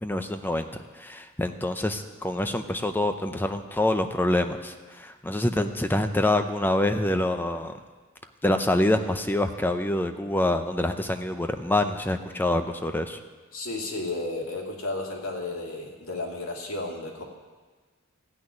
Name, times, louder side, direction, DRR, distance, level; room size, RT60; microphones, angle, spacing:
voice 1, 0.0-0.7 0.9-7.7 8.4-13.2, left 1 dB, 10° left, 8 dB, 0.5 m, -26 dB
voice 2, 13.5-17.2, left 2 dB, 80° left, -1 dB, 2.4 m, -33 dB
14.5 x 6.3 x 9.6 m, 1.4 s
head